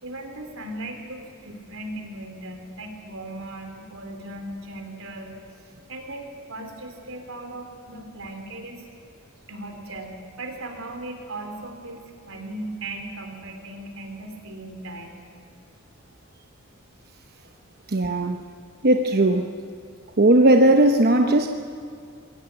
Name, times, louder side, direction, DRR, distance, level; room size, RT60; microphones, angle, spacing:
voice 1, 0.0-5.3 5.9-8.9 9.5-10.1 10.4-15.3, right 2 dB, 85° right, 4 dB, 3.6 m, -37 dB
voice 2, 17.9-18.4 18.8-19.5 20.2-21.5, right 1 dB, 50° right, 5 dB, 0.9 m, -17 dB
20.5 x 17.5 x 9.0 m, 2.4 s
head